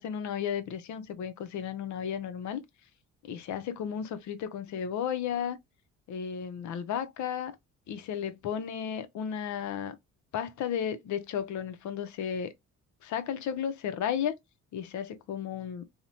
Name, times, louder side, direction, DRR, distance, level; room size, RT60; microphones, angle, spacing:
voice 1, 0.0-2.6 3.2-5.6 6.1-7.5 7.9-10.0 10.3-12.5 13.0-14.4 14.7-15.8, left 8 dB, 70° left, 0.6 m, -34 dB
2.9 x 2.1 x 2.5 m
cardioid pair, 90°, 30 cm